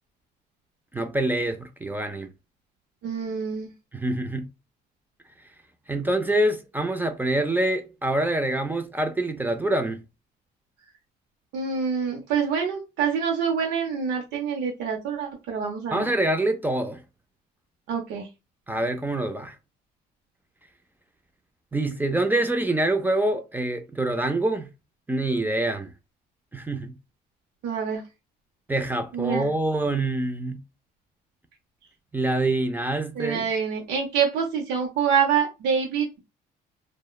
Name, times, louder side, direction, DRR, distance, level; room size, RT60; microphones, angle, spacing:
voice 1, 0.9-2.3 3.9-4.5 5.9-10.0 15.9-17.0 18.7-19.6 21.7-24.7 25.1-25.9 26.5-27.0 28.7-30.6 32.1-33.4, right 1 dB, 10° right, 0.3 m, -25 dB
voice 2, 3.0-3.7 11.5-16.1 17.9-18.3 27.6-28.0 29.1-29.5 33.2-36.2, right 6 dB, 80° right, 0.7 m, -26 dB
2.9 x 2.1 x 2.2 m
cardioid pair, 110°, 17 cm